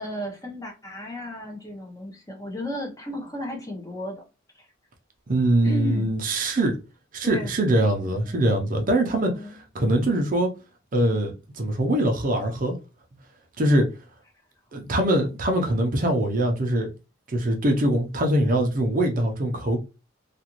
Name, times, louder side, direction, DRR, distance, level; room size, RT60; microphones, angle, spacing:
voice 1, 0.0-4.2 4.5-4.6 5.6-6.1 7.2-7.5 8.3-8.4 9.2-9.6, left 1 dB, 15° left, 0.7 m, -34 dB
voice 2, 5.3-6.8 7.1-10.5 10.9-12.8 13.6-13.9 14.7-16.9 17.3-19.8, right 1 dB, 40° right, 0.6 m, -23 dB
2.5 x 2.4 x 2.9 m
head